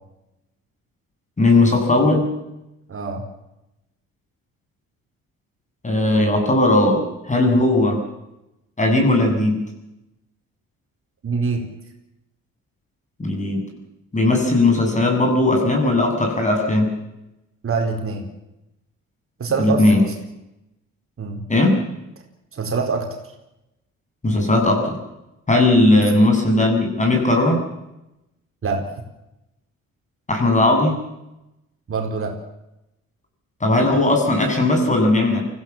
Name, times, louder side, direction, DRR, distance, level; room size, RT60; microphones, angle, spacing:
voice 1, 1.4-2.3 5.8-7.0 7.3-8.0 8.8-9.6 13.2-13.6 14.1-16.9 19.6-20.0 21.5-21.8 24.2-25.0 25.5-27.6 30.3-31.0 33.6-35.4, left 2 dB, 25° left, 2 dB, 7.7 m, -17 dB
voice 2, 2.9-3.2 11.2-11.7 17.6-18.3 19.4-20.1 21.2-21.5 22.5-23.2 26.0-26.1 28.6-28.8 31.9-32.4, right 4 dB, 45° right, 2 dB, 4.5 m, -24 dB
24.5 x 16.5 x 7.5 m, 0.91 s
cardioid pair, 90°, 30 cm